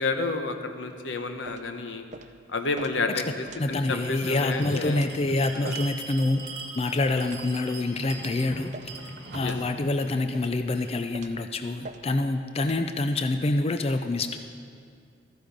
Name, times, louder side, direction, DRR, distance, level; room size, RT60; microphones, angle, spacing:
voice 1, 0.0-2.0 2.5-5.0 5.5-5.8 9.4-9.5, left 3 dB, 90° left, 7 dB, 0.9 m, -30 dB
sound 1, 1.5-1.7 2.1-2.3 2.8-2.9 3.4-3.7 4.3-4.4 4.9-5.1 5.6-5.8 6.4-6.5 7.2-7.4 8.0-8.2 8.7-8.9 9.5-9.7 10.3-10.6 11.1-11.4 11.8-12.0 12.6-12.8, right 3 dB, 40° right, 0.5 m, -43 dB
voice 2, 3.6-6.4 6.8-8.7 9.3-14.4, left 2 dB, 35° left, 7 dB, 0.4 m, -26 dB
Bell, 3.7-11.0, right 4 dB, 60° right, 1.6 m, -42 dB
14.0 x 9.9 x 5.2 m, 2.3 s
head